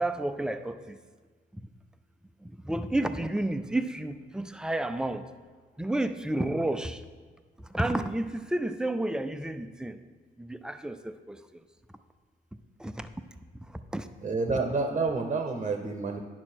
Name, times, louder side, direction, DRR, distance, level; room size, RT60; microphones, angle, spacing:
voice 1, 0.0-0.7 2.7-5.2 5.8-6.9 7.7-9.9 10.6-11.0 13.9-14.0, right 1 dB, 5° right, 0.5 m, -30 dB
voice 2, 14.2-16.2, right 4 dB, 35° right, 0.9 m, -29 dB
9.7 x 6.1 x 4.5 m
cardioid pair, 90°, 20 cm